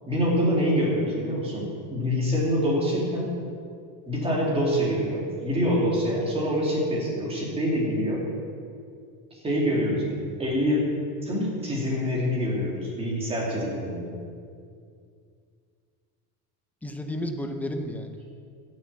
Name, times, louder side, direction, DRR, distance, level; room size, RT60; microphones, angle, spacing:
voice 1, 0.1-3.3 4.1-8.2 9.3-10.8 11.2-14.1, equal, 15° right, -4 dB, 3.2 m, -25 dB
voice 2, 16.8-18.3, left 1 dB, 5° left, 5 dB, 0.6 m, -32 dB
15.0 x 7.4 x 7.7 m, 2.3 s
cardioid pair, 170°, 44 cm